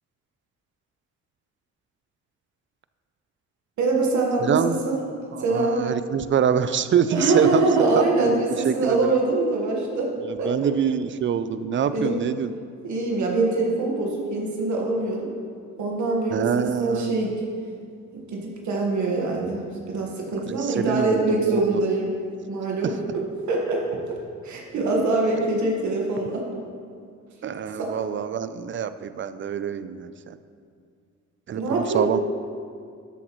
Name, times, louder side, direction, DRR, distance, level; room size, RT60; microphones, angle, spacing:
voice 1, 3.8-5.0 5.4-5.8 7.1-10.1 10.4-10.5 11.9-12.1 12.8-15.3 15.8-17.3 18.1-22.1 22.5-22.9 23.5-24.0 24.4-26.4 27.8-27.9 31.5-32.0, right 3 dB, 70° right, -1 dB, 1.5 m, -24 dB
voice 2, 4.4-4.8 5.3-7.6 8.0-9.2 10.3-12.5 16.3-17.1 20.5-21.8 27.4-30.4 31.5-32.2, right 8 dB, 40° right, 13 dB, 0.5 m, -25 dB
12.5 x 8.1 x 3.1 m, 2.3 s
cardioid pair, 90°, 30 cm